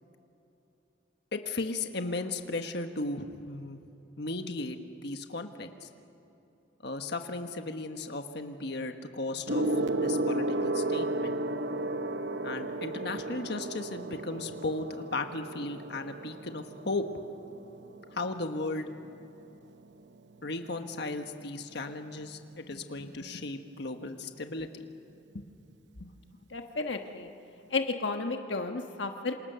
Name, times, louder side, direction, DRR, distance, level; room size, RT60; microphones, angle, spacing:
voice 1, 1.3-3.8 4.2-5.9 6.8-9.7 10.0-11.4 12.4-17.0 18.1-18.9 20.4-24.8 25.3-25.4 26.0-26.1, left 2 dB, 65° left, 6 dB, 1.4 m, -36 dB
Gong, 9.5-19.2 20.2-20.4, right 2 dB, 65° right, 0.9 m, -33 dB
voice 2, 26.5-27.3 27.7-29.3, left 3 dB, 80° left, 5 dB, 1.3 m, -32 dB
28.0 x 26.5 x 6.9 m, 2.8 s
head